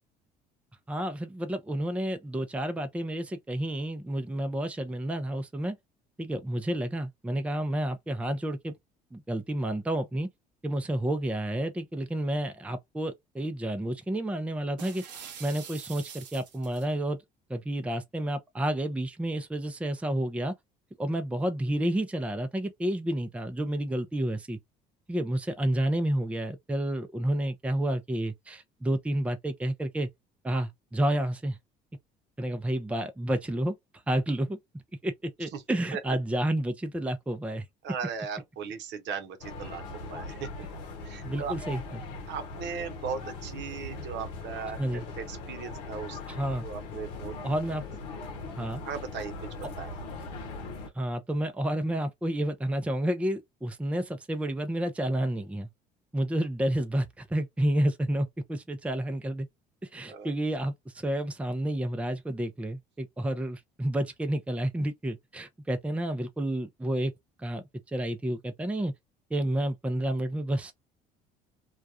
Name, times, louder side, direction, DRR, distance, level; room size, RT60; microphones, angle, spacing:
voice 1, 0.9-5.8 6.2-8.8 9.1-10.3 10.6-15.0 15.4-17.2 17.5-20.5 21.0-24.6 25.1-30.1 30.4-31.6 32.4-33.7 34.1-34.6 35.0-37.6 41.2-42.0 44.8-45.1 46.3-46.7 47.4-47.8 48.6-48.8 51.0-55.7 56.1-59.5 59.8-67.1 67.4-68.9 69.3-70.7, right 1 dB, 5° right, 0.5 m, -30 dB
sound 1, 14.8-16.9, right 8 dB, 90° right, 0.6 m, -45 dB
voice 2, 37.8-39.8 40.1-40.5 41.0-41.6 42.3-46.2 46.6-47.3 48.9-49.9 60.1-60.3, right 6 dB, 60° right, 0.8 m, -37 dB
sound 2, 39.4-50.9, left 3 dB, 80° left, 0.8 m, -40 dB
2.3 x 2.3 x 2.7 m
hypercardioid pair, 60°, 21 cm